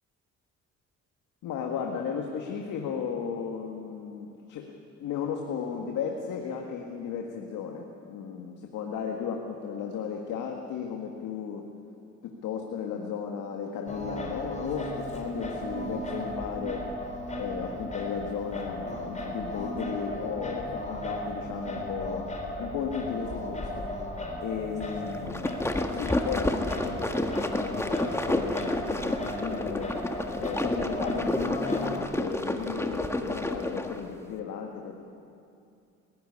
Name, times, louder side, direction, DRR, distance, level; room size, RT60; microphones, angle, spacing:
voice 1, 1.4-4.7 5.0-11.6 12.2-16.9 17.4-22.3 22.6-23.9 24.4-27.2 27.6-30.0 30.4-34.9, left 6 dB, 85° left, 2 dB, 1.8 m, -35 dB
Singing, 13.9-32.0, left 1 dB, 25° left, 3.6 m, -36 dB
sound 1, 25.1-34.0, left 1 dB, 10° left, 1.6 m, -30 dB
19.0 x 16.0 x 9.8 m, 2.6 s
cardioid pair, 90°, 30 cm